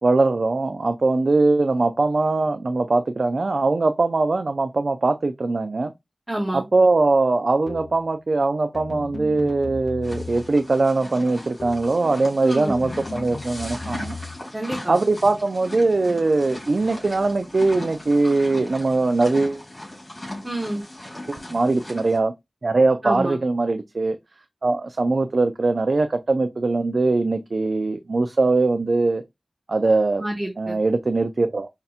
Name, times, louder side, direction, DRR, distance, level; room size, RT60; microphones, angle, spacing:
voice 1, 0.0-5.9 6.5-14.2 14.9-19.6 21.3-22.3 22.6-24.2 24.6-29.2 29.7-30.2 30.6-31.7, right 3 dB, 65° right, 0.3 m, -21 dB
voice 2, 6.3-6.6 12.4-12.8 14.5-15.0 20.4-20.8 23.0-23.4 30.2-30.8, right 1 dB, 15° right, 1.0 m, -28 dB
sound 1, 7.7-8.1 8.7-10.7 11.6-12.0 12.7-14.4, left 3 dB, 65° left, 0.3 m, -36 dB
sound 2, 10.0-22.2, left 1 dB, 35° left, 2.8 m, -38 dB
5.3 x 2.8 x 2.4 m
wide cardioid pair, 55°, 0 cm